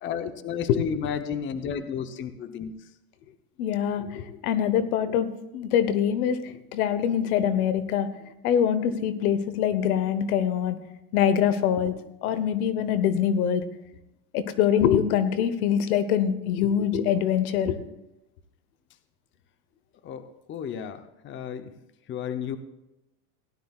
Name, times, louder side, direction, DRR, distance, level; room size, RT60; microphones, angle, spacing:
voice 1, 0.0-2.8 20.0-21.7 22.1-22.6, left 7 dB, 25° left, 10 dB, 0.7 m, -32 dB
voice 2, 3.6-8.1 8.4-10.8 11.1-12.0 12.2-13.6 14.3-17.8, left 9 dB, 85° left, 12 dB, 1.1 m, -24 dB
17.5 x 11.5 x 2.4 m, 0.90 s
supercardioid pair, 130°, 43 cm